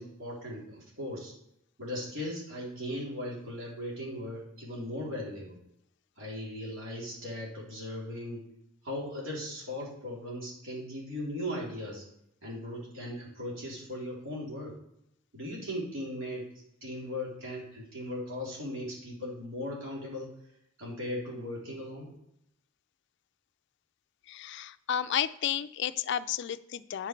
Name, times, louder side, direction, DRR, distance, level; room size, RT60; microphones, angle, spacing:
voice 1, 0.0-1.3 1.8-5.6 6.2-8.4 8.8-12.0 12.4-14.7 15.3-16.4 16.8-20.3 20.8-22.1, left 1 dB, 70° right, -4 dB, 3.5 m, -38 dB
voice 2, 24.3-27.1, left 9 dB, 60° left, 14 dB, 0.4 m, -32 dB
9.6 x 5.8 x 4.5 m, 0.78 s
head